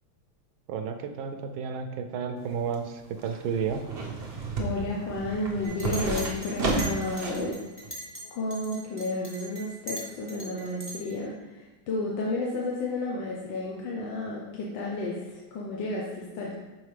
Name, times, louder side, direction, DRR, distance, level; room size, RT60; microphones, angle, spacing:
voice 1, 0.7-3.8, right 6 dB, 75° right, 6 dB, 1.3 m, -32 dB
sound 1, 2.4-7.5 7.8-7.9, right 3 dB, 60° right, 0.6 m, -32 dB
voice 2, 4.6-7.6 8.2-16.5, left 2 dB, 70° left, -3 dB, 1.4 m, -32 dB
Chink clink, 5.6-8.2 8.5-11.2, right 1 dB, 10° left, 0.8 m, -40 dB
6.4 x 4.4 x 3.3 m, 1.1 s
omnidirectional pair, 2.3 m